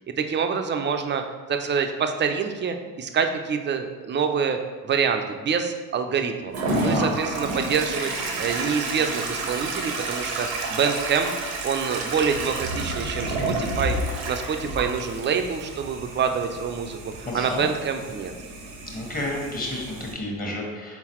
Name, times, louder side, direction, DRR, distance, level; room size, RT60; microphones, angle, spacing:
voice 1, 0.1-1.2 1.5-6.5 6.8-11.3 11.6-18.3, right 6 dB, 30° right, 6 dB, 0.4 m, -26 dB
Toilet flush, 6.5-20.1, right 2 dB, 85° right, 0.8 m, -30 dB
voice 2, 6.7-7.1 17.2-17.7 18.9-21.0, left 1 dB, 20° left, -1 dB, 1.3 m, -30 dB
3.9 x 3.9 x 3.0 m, 1.3 s
hypercardioid pair, 65°, 39 cm